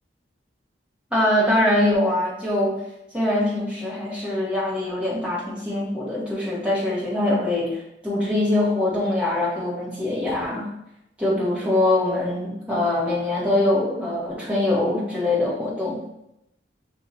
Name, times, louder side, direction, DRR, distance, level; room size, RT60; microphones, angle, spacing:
voice 1, 1.1-2.8 3.1-10.7 11.2-16.0, left 1 dB, 5° right, -7 dB, 1.5 m, -23 dB
6.4 x 2.8 x 2.8 m, 0.82 s
head